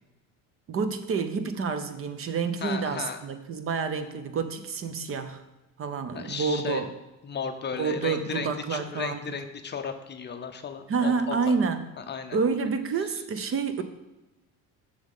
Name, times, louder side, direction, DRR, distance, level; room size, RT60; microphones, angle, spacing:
voice 1, 0.7-5.4 5.8-6.9 7.8-9.2 10.9-11.8 12.3-13.8, right 5 dB, 40° right, 10 dB, 0.6 m, -28 dB
voice 2, 2.6-3.2 6.1-6.9 7.2-11.5 12.0-12.4, left 6 dB, 30° left, 7 dB, 0.5 m, -35 dB
7.1 x 6.4 x 3.6 m, 1.0 s
cardioid pair, 105°, 37 cm